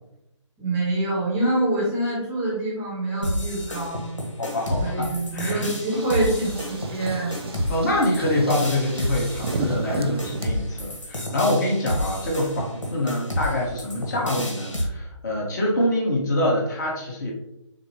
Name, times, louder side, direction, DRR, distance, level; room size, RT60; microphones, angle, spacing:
voice 1, 0.6-4.2 4.8-7.4, right 2 dB, 10° right, -6 dB, 0.9 m, -25 dB
sound 1, 3.2-14.8, left 1 dB, 80° left, 1.4 m, -30 dB
voice 2, 4.4-5.7 7.7-17.3, left 1 dB, 35° left, -2 dB, 1.3 m, -25 dB
sound 2, 5.8-10.4, right 3 dB, 55° right, 0.5 m, -33 dB
6.6 x 2.2 x 3.1 m, 0.86 s
figure-of-eight pair, 145°, 16 cm